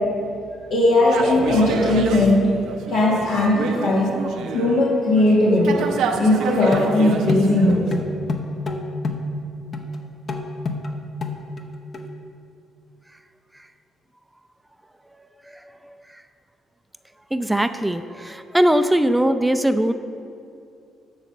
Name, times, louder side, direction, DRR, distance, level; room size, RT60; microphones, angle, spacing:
voice 1, 0.7-2.4 2.9-4.1 4.5-5.8 6.2-7.8, left 2 dB, 75° left, -7 dB, 1.8 m, -18 dB
sound 1, 1.1-4.8 5.2-8.0, right 5 dB, 80° right, 0.7 m, -29 dB
sound 2, 6.0-6.1 6.7-9.4 9.7-10.0 10.3-11.7 11.9-12.1, left 2 dB, 45° left, 0.9 m, -28 dB
voice 2, 17.3-19.9, right 1 dB, 10° right, 10 dB, 0.5 m, -20 dB
12.5 x 4.2 x 6.7 m, 2.5 s
supercardioid pair, 75°, 0 cm